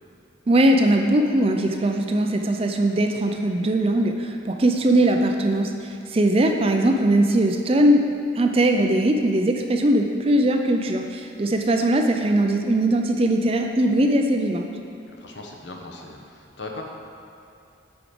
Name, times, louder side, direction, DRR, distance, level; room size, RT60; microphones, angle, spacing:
voice 1, 0.5-8.0 8.4-14.7, right 1 dB, 30° right, 4 dB, 0.4 m, -20 dB
voice 2, 15.2-16.8, left 2 dB, 65° left, 1 dB, 0.9 m, -38 dB
8.7 x 4.8 x 5.2 m, 2.6 s
head